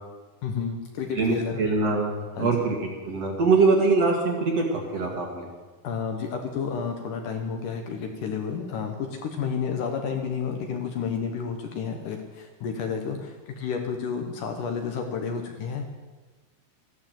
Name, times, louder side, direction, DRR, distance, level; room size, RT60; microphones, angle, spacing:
voice 1, 0.4-1.6 2.4-2.5 5.8-15.9, left 6 dB, 65° left, 4 dB, 2.4 m, -31 dB
voice 2, 1.1-2.8 3.0-5.5, right 4 dB, 50° right, 0 dB, 2.6 m, -23 dB
14.0 x 11.5 x 7.7 m, 1.3 s
omnidirectional pair, 4.5 m